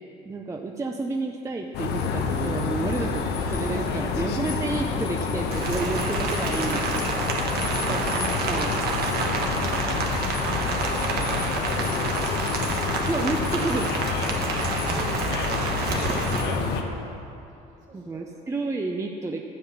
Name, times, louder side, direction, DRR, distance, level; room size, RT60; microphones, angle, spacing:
voice 1, 0.2-3.2 3.5-6.8 7.9-8.7 13.1-14.1 17.9-19.4, right 3 dB, 20° right, 2 dB, 0.5 m, -30 dB
sound 1, 1.7-16.8, left 4 dB, 80° left, 1.0 m, -28 dB
voice 2, 3.6-4.2 6.5-8.1 9.4-12.3 14.3-15.7 16.1-16.7 17.0-17.1 17.8-18.3, right 1 dB, 45° right, -3 dB, 2.9 m, -43 dB
Rain, 5.5-16.4, right 4 dB, 70° right, 1.4 m, -29 dB
11.5 x 7.7 x 5.9 m, 2.8 s
cardioid pair, 110°, 17 cm